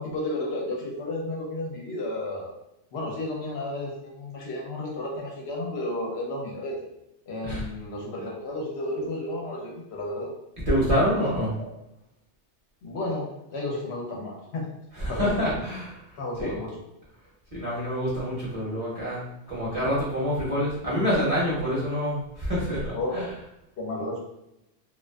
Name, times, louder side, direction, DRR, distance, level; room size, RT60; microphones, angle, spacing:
voice 1, 0.0-2.5 2.9-6.8 7.3-10.3 11.2-11.3 11.6-11.7 12.8-14.6 15.1-15.4 16.2-16.8 22.9-23.2 23.8-24.2, left 1 dB, 70° left, -1 dB, 0.9 m, -32 dB
voice 2, 10.7-11.5 14.9-16.5 17.5-23.3, equal, 35° right, -7 dB, 0.8 m, -27 dB
2.4 x 2.3 x 2.2 m, 0.87 s
omnidirectional pair, 1.1 m